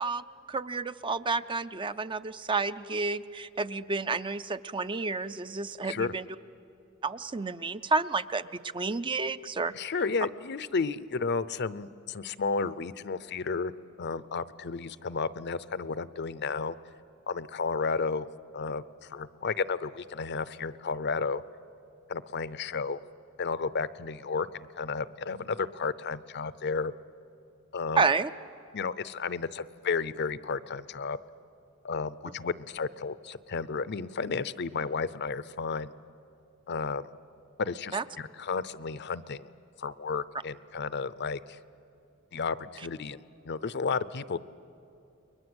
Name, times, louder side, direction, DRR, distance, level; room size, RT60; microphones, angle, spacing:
voice 1, 0.0-6.3 7.0-8.5 8.7-9.7 28.0-28.3 37.9-38.0, right 4 dB, 25° right, 12 dB, 0.5 m, -30 dB
voice 2, 9.7-13.7 14.0-16.8 17.3-18.3 18.5-21.4 22.1-23.0 23.4-26.9 27.7-28.0 28.7-31.2 31.8-35.9 36.7-37.1 37.6-39.5 39.8-41.6 42.3-43.2 43.4-44.4, left 4 dB, 55° left, 16 dB, 0.6 m, -32 dB
30.0 x 22.0 x 8.0 m, 2.8 s
head